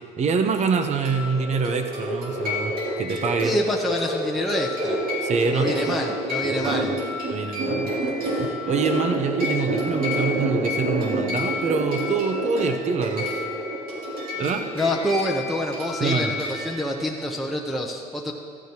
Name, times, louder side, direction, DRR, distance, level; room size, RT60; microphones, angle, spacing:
voice 1, 0.2-2.7 3.0-3.6 5.2-5.9 6.5-6.9 7.3-13.5 14.4-14.7 16.0-16.3, right 5 dB, 45° right, 7 dB, 0.8 m, -25 dB
sound 1, 0.6-7.3 7.6-16.6 16.9-17.3 17.6-17.7, right 1 dB, 80° right, 2.9 m, -29 dB
sound 2, 0.9-17.0, left 4 dB, 60° right, 2.4 m, -34 dB
voice 2, 3.4-5.0 5.5-6.9 14.7-18.3, left 1 dB, ahead, -1 dB, 0.9 m, -27 dB
14.0 x 13.0 x 3.0 m, 2.1 s
cardioid pair, 110°, 17 cm